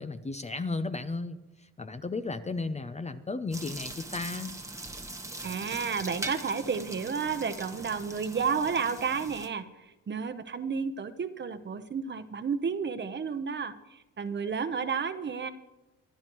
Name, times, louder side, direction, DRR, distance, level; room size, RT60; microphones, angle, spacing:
voice 1, 0.0-1.4 1.8-4.6, left 3 dB, 20° left, 10 dB, 0.6 m, -34 dB
sound 1, 3.5-9.5, right 2 dB, 10° right, 1.2 m, -41 dB
voice 2, 5.4-15.5, right 6 dB, 35° right, 11 dB, 0.9 m, -32 dB
25.5 x 11.0 x 3.1 m, 1.0 s
cardioid pair, 90°, 30 cm